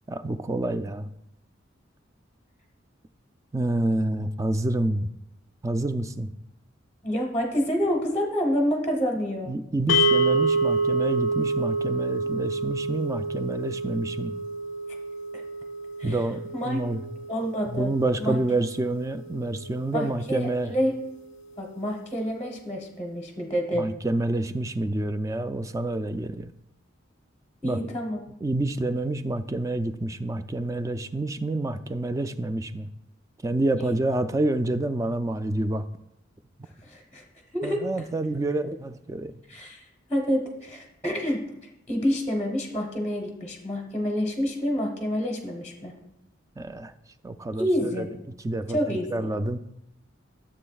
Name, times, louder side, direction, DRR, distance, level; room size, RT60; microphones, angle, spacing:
voice 1, 0.1-1.1 3.5-5.1 5.6-6.3 9.5-14.4 16.0-17.0 17.7-20.7 23.7-26.5 27.6-27.8 28.4-32.9 33.4-35.9 37.6-39.4 46.6-46.9 47.2-48.0 48.4-49.6, right 2 dB, 15° right, 10 dB, 0.3 m, -28 dB
voice 2, 7.0-9.5 15.3-15.4 16.0-16.2 16.5-16.8 17.3-17.9 18.2-18.4 19.9-20.9 21.6-23.8 27.6-28.2 33.8-34.0 36.8-37.2 37.5-37.8 39.5-39.8 40.1-41.4 41.9-45.9 47.6-48.1 48.7-49.3, equal, 10° left, 0 dB, 1.0 m, -28 dB
sound 1, 9.9-20.2, right 2 dB, 70° left, 0.5 m, -28 dB
13.0 x 7.5 x 2.3 m, 0.84 s
head